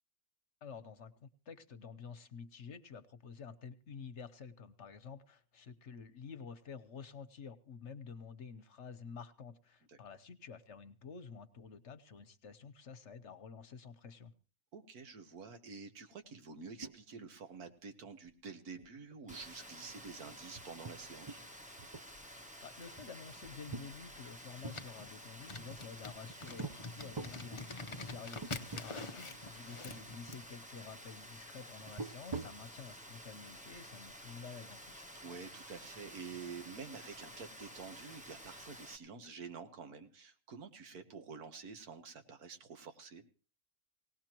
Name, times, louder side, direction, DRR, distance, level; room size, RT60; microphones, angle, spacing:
voice 1, 0.6-14.3 22.6-35.0, left 5 dB, 55° left, 11 dB, 1.1 m, -50 dB
voice 2, 14.7-21.4 28.7-28.8 35.2-43.2, right 5 dB, 90° right, 7 dB, 1.8 m, -49 dB
sound 1, 16.8-17.3 17.6-17.7 18.1-18.3 18.7-18.9 19.3-21.5 21.8-22.5 23.0-24.8 25.5-26.1 26.6-26.8 27.1-27.4 28.0-28.1 28.4-28.9 29.2-29.3 29.9-30.4 31.8-32.7, right 3 dB, 35° right, 0.4 m, -45 dB
Rain, 19.3-39.0, equal, 5° right, 0.8 m, -52 dB
sound 2, 24.7-30.4, left 3 dB, 30° left, 0.6 m, -46 dB
19.5 x 18.0 x 3.0 m, 0.37 s
omnidirectional pair, 1.5 m